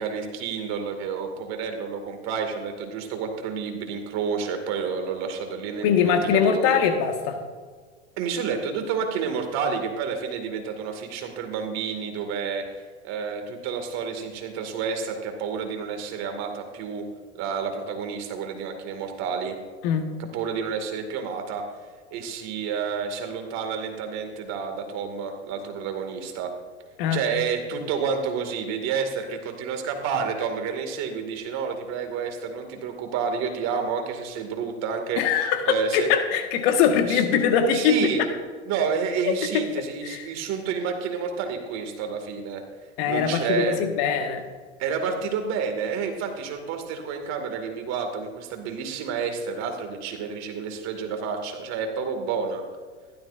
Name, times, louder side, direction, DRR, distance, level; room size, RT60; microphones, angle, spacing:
voice 1, 0.0-6.8 8.2-17.0 17.4-19.6 20.3-21.6 22.1-26.5 27.1-36.1 37.1-37.2 37.7-38.2 38.7-42.6 43.0-43.8 44.8-52.6, right 6 dB, 50° right, 5 dB, 2.3 m, -30 dB
voice 2, 5.8-7.4 19.8-20.0 27.0-27.2 35.2-35.6 35.9-38.0 39.5-39.6 40.0-40.2 43.0-44.4, left 7 dB, 60° left, 5 dB, 1.7 m, -22 dB
15.5 x 12.5 x 2.6 m, 1.5 s
hypercardioid pair, 100°, 35 cm